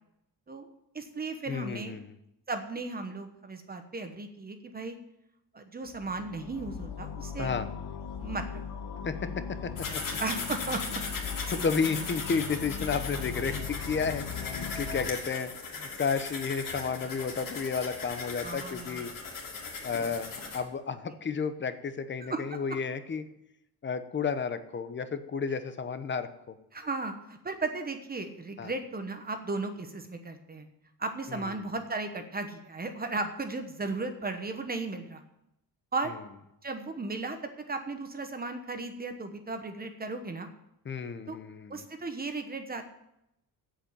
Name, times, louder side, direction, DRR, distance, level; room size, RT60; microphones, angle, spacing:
voice 1, 0.9-2.0 2.5-5.0 5.5-7.5 8.2-8.6 9.9-11.0 11.4-11.7 18.4-19.0 20.5-20.7 22.2-22.6 26.7-30.7 31.0-35.2 35.9-36.1 36.6-40.5 41.3-41.4 41.7-42.8, right 3 dB, 25° right, 7 dB, 1.1 m, -36 dB
voice 2, 1.5-2.1 7.4-7.7 9.0-9.2 9.6-9.7 10.1-10.2 11.5-19.1 19.8-23.2 23.8-26.6 28.6-28.7 31.3-31.5 40.8-41.8, left 5 dB, 30° left, 10 dB, 0.9 m, -32 dB
sound 1, 5.9-15.1, left 7 dB, 90° left, 1.2 m, -39 dB
sound 2, 9.8-20.6, left 4 dB, 55° left, 2.8 m, -38 dB
8.0 x 7.7 x 8.6 m, 0.82 s
cardioid pair, 145°, 39 cm